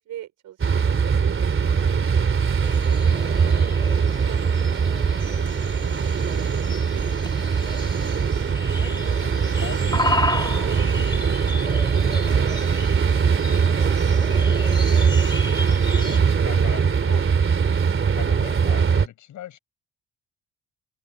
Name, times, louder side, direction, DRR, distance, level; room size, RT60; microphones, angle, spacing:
voice 1, 0.0-5.3 6.1-8.2 9.0-9.3 9.7-12.3, right 12 dB, 75° right, 5.1 m, -45 dB
sound 1, 0.6-19.1, right 6 dB, 45° right, 3.0 m, -21 dB
sound 2, 2.6-16.2, left 2 dB, 15° left, 3.0 m, -33 dB
voice 2, 8.8-9.9 10.9-11.1 12.0-12.4 15.9-17.3 18.1-19.6, left 12 dB, 75° left, 6.1 m, -39 dB
open air
cardioid pair, 90°, 30 cm